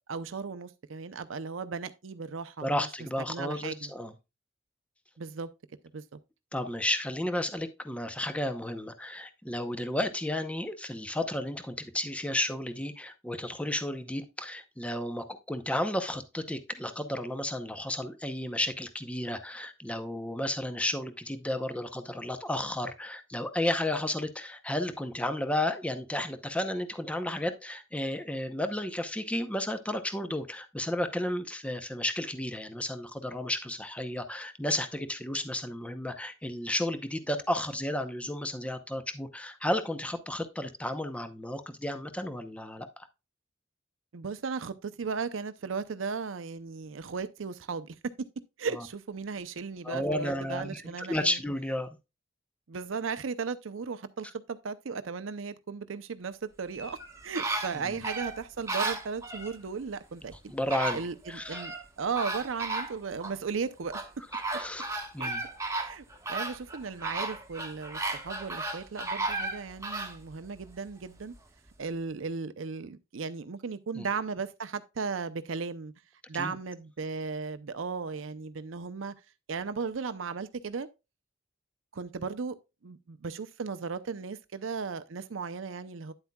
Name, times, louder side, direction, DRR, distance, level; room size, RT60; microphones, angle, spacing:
voice 1, 0.1-2.9 3.3-3.9 5.2-5.5 5.9-6.2 44.1-48.0 48.6-51.4 52.7-60.5 60.9-64.1 65.2-65.3 65.8-66.0 66.3-71.3 71.8-75.9 76.3-79.1 79.5-80.9 81.9-82.6 82.8-86.1, right 5 dB, 90° right, 0.6 m, -36 dB
voice 2, 2.6-4.1 6.5-43.1 48.7-48.8 49.8-52.0 57.8-57.9 60.5-61.0 61.3-61.6 64.6-65.4 74.0-74.1 76.4-76.6, left 1 dB, 5° left, 0.7 m, -33 dB
sound 1, 56.7-59.6 60.3-60.4 60.7-61.8 62.2-63.4 63.9-70.2 70.6-70.7, right 2 dB, 15° right, 1.2 m, -34 dB
9.7 x 8.0 x 2.3 m
head